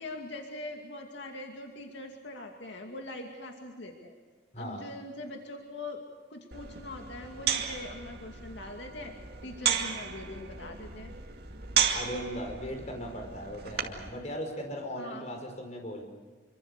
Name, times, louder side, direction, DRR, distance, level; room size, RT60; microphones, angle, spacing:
voice 1, 0.0-4.2 4.6-6.0 6.3-9.1 9.4-11.1 15.0-15.4, left 2 dB, 75° left, 2 dB, 2.5 m, -42 dB
sound 1, 6.5-14.1, right 7 dB, 60° right, 2.3 m, -34 dB
voice 2, 11.9-16.0, equal, 40° left, 3 dB, 5.1 m, -38 dB
27.0 x 24.5 x 6.7 m, 1.4 s
head